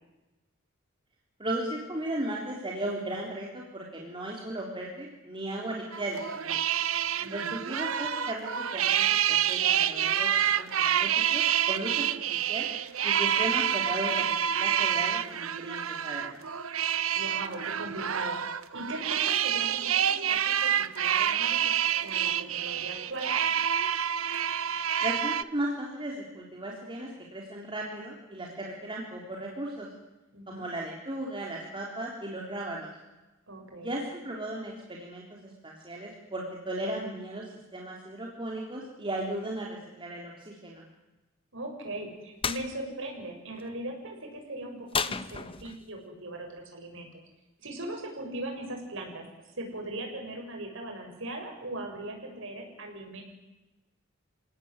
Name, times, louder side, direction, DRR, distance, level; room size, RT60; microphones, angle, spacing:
voice 1, 1.4-6.6 7.3-12.7 13.0-16.4 25.0-29.9 30.5-32.9 33.7-40.8, right 1 dB, 25° right, -2 dB, 3.8 m, -36 dB
sound 1, 5.9-25.4, right 9 dB, 85° right, 1.0 m, -28 dB
voice 2, 17.1-18.4 18.7-23.3 30.3-30.6 33.5-33.9 41.5-47.2 47.6-53.2, right 1 dB, 65° right, 2 dB, 7.5 m, -39 dB
sound 2, 42.4-42.7 44.9-45.9, left 5 dB, 25° left, 1.1 m, -31 dB
29.0 x 17.5 x 9.8 m, 1.1 s
head